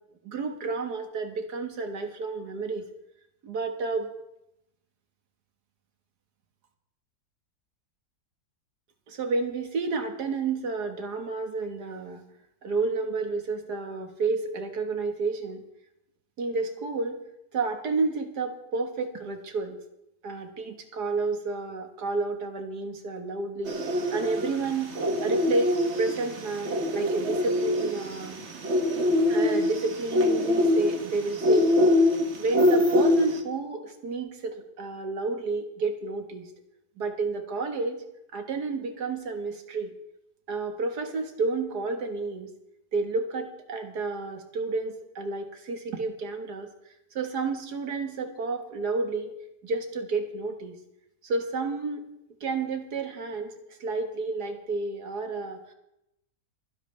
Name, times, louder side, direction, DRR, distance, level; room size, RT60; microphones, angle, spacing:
voice 1, 0.2-2.8 3.4-4.1 9.1-12.2 12.6-15.6 16.4-17.2 17.5-19.8 20.2-28.4 29.3-31.7 32.4-36.5 37.0-38.0 38.3-39.9 40.5-42.5 42.9-46.7 47.1-49.3 49.6-50.8 51.2-52.1 52.4-53.5 53.8-55.7, right 3 dB, 80° right, 5 dB, 2.1 m, -30 dB
sound 1, 23.6-33.4, left 1 dB, 45° right, 1.4 m, -24 dB
25.0 x 10.5 x 3.4 m, 0.85 s
omnidirectional pair, 1.7 m